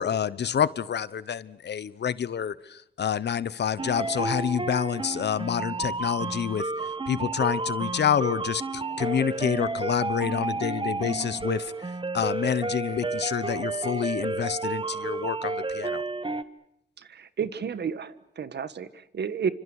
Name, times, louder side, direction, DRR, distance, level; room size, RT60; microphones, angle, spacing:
voice 1, 0.0-6.7 7.1-16.0, left 8 dB, 75° left, 1.0 m, -28 dB
sound 1, 3.8-16.4, right 3 dB, 30° right, 1.4 m, -31 dB
voice 2, 17.0-19.5, right 7 dB, 75° right, 1.5 m, -32 dB
28.5 x 25.5 x 6.5 m
cardioid pair, 80°, 18 cm